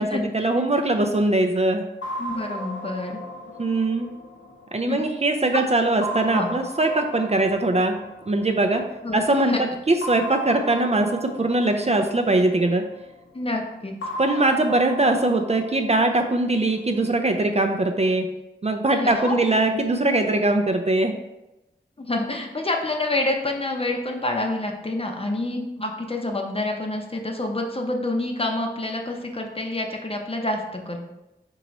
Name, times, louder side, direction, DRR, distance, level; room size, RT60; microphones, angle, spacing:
voice 1, 0.0-1.8 3.6-4.1 4.7-8.0 8.3-8.8 9.1-9.6 9.9-12.8 14.2-18.3 18.6-21.1, right 2 dB, 35° right, 4 dB, 0.4 m, -21 dB
sound 1, 2.0-5.3 6.0-8.9 10.0-13.1 14.0-17.1, equal, 85° left, 0.6 m, -36 dB
voice 2, 2.2-3.2 4.9-5.0 5.5-5.6 6.3-6.5 9.0-9.6 13.3-13.9 18.9-19.4 22.0-31.0, left 2 dB, 30° left, 2 dB, 0.7 m, -27 dB
4.6 x 3.0 x 3.9 m, 0.95 s
wide cardioid pair, 55°, 19 cm